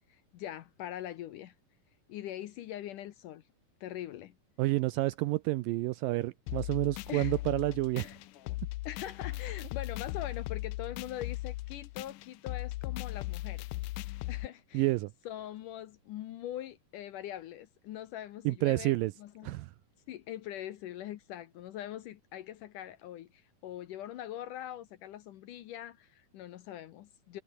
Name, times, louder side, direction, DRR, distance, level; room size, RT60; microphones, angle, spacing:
voice 1, 0.1-1.5 2.1-3.4 3.8-4.4 7.1-7.4 8.0-8.6 8.9-13.7 14.0-14.9 15.3-19.6 20.1-27.4, left 12 dB, 70° left, 2.2 m, -43 dB
voice 2, 4.6-8.1 14.7-15.1 18.5-19.1 19.4-19.7, right 18 dB, 80° right, 2.1 m, -29 dB
sound 1, 6.5-14.5, left 19 dB, 85° left, 1.8 m, -38 dB
omnidirectional pair, 4.5 m